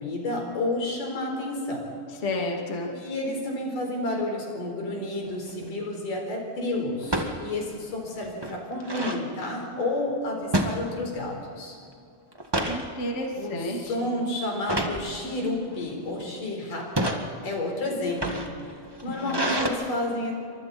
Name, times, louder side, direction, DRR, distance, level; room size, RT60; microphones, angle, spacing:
voice 1, 0.0-1.9 2.9-11.8 13.4-18.5 19.0-20.3, left 2 dB, 75° left, 1 dB, 5.9 m, -30 dB
voice 2, 2.2-2.9 12.6-13.8 19.1-19.5, left 1 dB, 25° left, 0 dB, 2.3 m, -31 dB
sound 1, 5.3-5.6 7.0-7.3 7.8-7.9 8.2-9.2 10.5-11.3 11.7-11.9 12.3-12.8 13.4-13.7 14.6-15.0 15.8-16.2 16.8-17.2 18.0-19.7, right 1 dB, 30° right, 0.4 m, -28 dB
28.5 x 25.5 x 4.3 m, 2.5 s
omnidirectional pair, 3.7 m